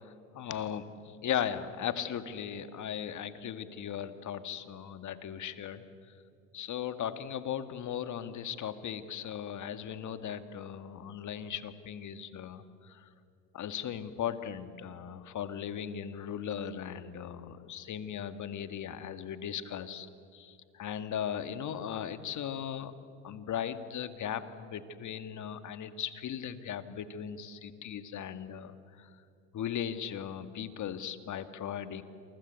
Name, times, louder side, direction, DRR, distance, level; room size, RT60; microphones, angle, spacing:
voice 1, 0.3-5.9 6.5-13.0 13.5-20.1 20.3-22.9 23.2-29.1 29.5-32.0, left 9 dB, 45° left, 10 dB, 1.9 m, -37 dB
28.0 x 24.0 x 8.3 m, 2.3 s
hypercardioid pair, 80°, 41 cm